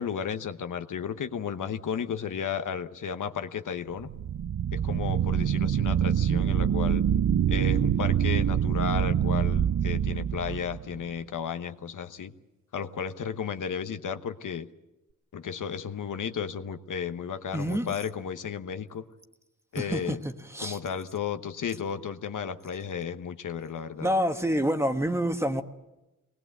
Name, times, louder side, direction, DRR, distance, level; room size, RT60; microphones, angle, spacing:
voice 1, 0.0-4.1 4.7-7.0 7.5-12.3 12.7-14.7 15.3-19.0 19.7-20.2 20.6-24.1, left 7 dB, 75° left, 1.0 m, -33 dB
sound 1, 4.0-11.0, right 9 dB, 60° right, 0.7 m, -25 dB
voice 2, 17.5-17.9 19.8-20.2 20.5-20.8 24.0-25.6, equal, 10° right, 1.2 m, -27 dB
22.5 x 19.5 x 7.9 m
wide cardioid pair, 100°, 32 cm